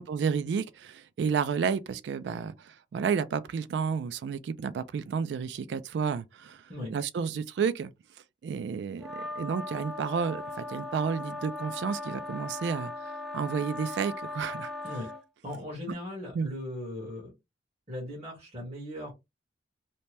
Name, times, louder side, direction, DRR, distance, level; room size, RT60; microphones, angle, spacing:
voice 1, 0.0-6.6 6.9-7.9 8.4-12.9 13.3-14.7 15.9-16.0 16.3-16.5, right 6 dB, 70° right, 0.3 m, -31 dB
sound 1, 9.0-15.2, left 2 dB, ahead, 0.4 m, -38 dB
voice 2, 15.4-17.3 17.9-19.1, left 1 dB, 35° right, 1.2 m, -38 dB
2.7 x 2.1 x 3.2 m
head